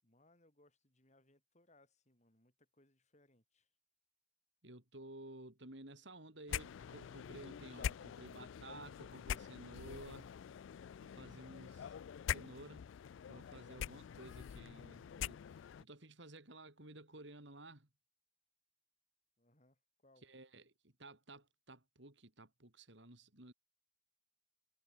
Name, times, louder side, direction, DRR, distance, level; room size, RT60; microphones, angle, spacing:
voice 1, 0.0-3.7 19.4-20.3, left 1 dB, 35° left, 7.0 m, -70 dB
voice 2, 4.6-10.3 11.0-11.9 12.3-12.9 13.3-15.4 15.8-17.9 20.2-23.5, right 2 dB, 60° right, 3.5 m, -54 dB
sound 1, 6.5-15.8, left 9 dB, 65° left, 0.3 m, -45 dB
head